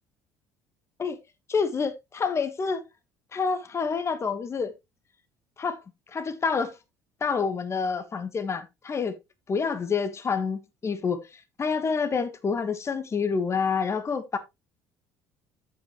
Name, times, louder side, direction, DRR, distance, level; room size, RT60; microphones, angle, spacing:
voice 1, 1.5-2.8 3.3-4.7 5.6-5.8 6.1-6.7 7.2-9.1 9.5-14.4, left 5 dB, 35° left, 1.4 m, -28 dB
13.0 x 5.6 x 3.0 m
hypercardioid pair, 65°, 8 cm